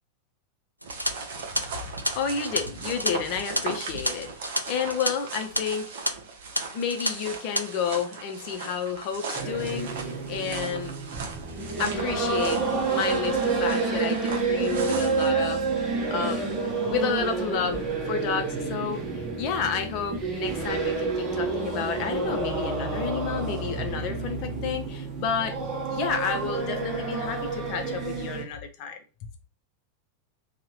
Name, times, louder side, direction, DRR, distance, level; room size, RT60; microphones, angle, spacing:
sound 1, 0.8-15.3, right 4 dB, 55° right, 0.7 m, -38 dB
sound 2, 0.8-5.1 5.4-5.6 6.0-6.1 6.5-7.1 7.4-7.6, equal, 90° right, 0.3 m, -30 dB
voice 1, 1.9-5.9 6.7-10.9 11.8-12.6 12.9-25.6 25.9-29.0, left 7 dB, 45° left, 0.7 m, -31 dB
Singing in a church, 9.3-28.4, right 4 dB, 20° right, 1.0 m, -29 dB
2.8 x 2.4 x 3.1 m
figure-of-eight pair, 90°, 0 cm